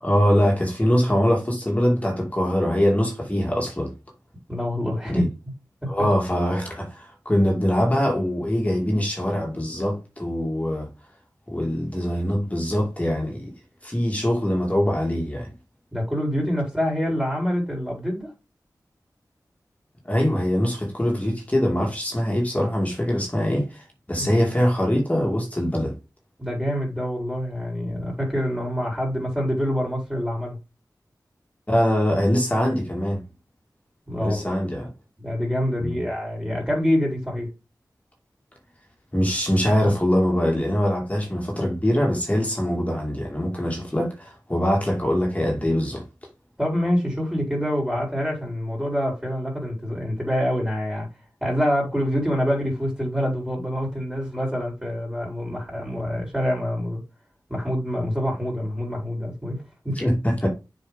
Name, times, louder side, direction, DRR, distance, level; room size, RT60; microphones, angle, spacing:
voice 1, 0.0-3.9 5.1-5.3 5.9-10.9 11.5-13.5 13.8-15.5 20.1-25.9 31.7-33.2 34.2-34.9 35.8-36.0 39.1-46.0 59.9-60.5, equal, 20° left, 2.4 m, -23 dB
voice 2, 4.5-5.3 5.8-5.9 15.9-18.3 24.2-24.3 26.4-30.6 34.1-34.6 35.2-37.5 46.6-51.1 51.4-57.0 57.5-60.0, equal, 10° right, 4.3 m, -26 dB
7.3 x 5.4 x 4.0 m
wide cardioid pair, 65°, 7 cm